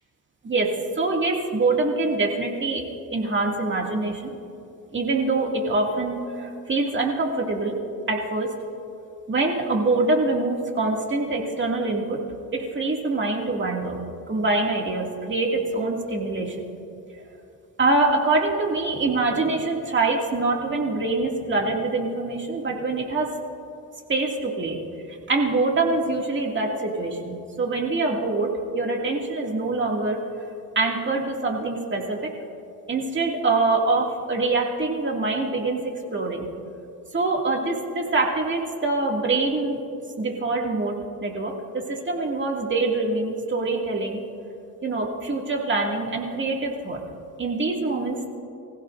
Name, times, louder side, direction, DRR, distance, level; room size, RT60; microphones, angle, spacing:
voice 1, 0.4-2.8 3.1-4.3 4.9-7.8 8.1-8.5 9.3-12.2 12.5-16.6 17.8-23.4 24.1-24.8 25.1-30.5 30.8-32.3 32.9-36.5 37.1-39.8 40.2-44.2 44.8-47.0 47.4-48.3, right 3 dB, 30° right, 0 dB, 2.2 m, -25 dB
24.5 x 16.0 x 2.6 m, 2.5 s
cardioid pair, 110°, 38 cm